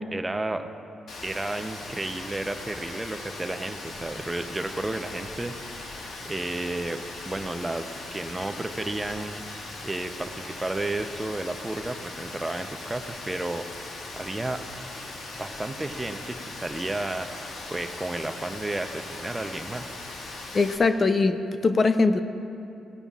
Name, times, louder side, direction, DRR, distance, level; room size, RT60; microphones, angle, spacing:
voice 1, 0.1-0.7 1.2-9.5 9.8-14.6 15.3-19.9, right 2 dB, 15° right, 8 dB, 0.7 m, -32 dB
Rain, 1.1-20.8, left 2 dB, 70° left, 1.6 m, -39 dB
voice 2, 20.5-22.2, left 3 dB, 40° left, 10 dB, 0.5 m, -21 dB
17.0 x 13.5 x 2.4 m, 2.7 s
cardioid pair, 70°, 0 cm